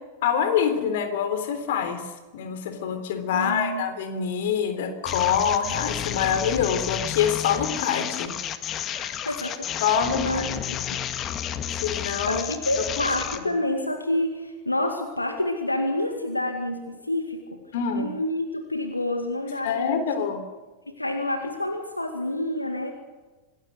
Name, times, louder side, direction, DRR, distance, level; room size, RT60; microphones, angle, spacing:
voice 1, 0.2-8.3 8.9-9.2 9.8-10.5 10.8-10.9 11.8-12.4 17.7-18.1 19.6-20.4, left 7 dB, 55° left, 9 dB, 3.6 m, -25 dB
voice 2, 3.3-3.8 9.2-10.8 12.3-17.6 17.9-20.0 20.9-22.9, left 1 dB, 85° left, 5 dB, 2.1 m, -28 dB
sound 1, 5.1-13.4, left 9 dB, 30° left, 1.7 m, -31 dB
26.5 x 19.0 x 6.7 m, 1.3 s
figure-of-eight pair, 90°, 0 cm